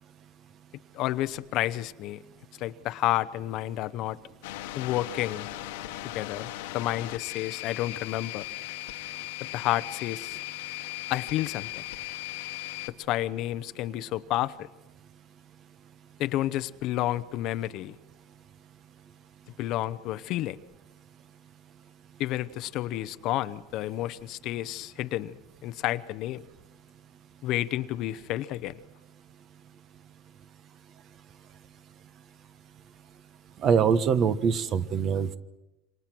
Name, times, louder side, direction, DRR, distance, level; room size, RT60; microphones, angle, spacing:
voice 1, 0.9-2.2 2.6-4.2 4.8-5.5 6.0-8.5 9.5-10.4 11.1-11.8 13.0-14.7 16.2-18.0 19.6-20.6 22.2-26.4 27.4-28.8, left 14 dB, 45° left, 0.8 m, -30 dB
sound 1, 4.4-12.9, left 17 dB, 75° left, 1.4 m, -38 dB
voice 2, 33.6-35.4, right 6 dB, 35° right, 1.2 m, -23 dB
28.0 x 26.0 x 6.1 m
supercardioid pair, 145°, 0 cm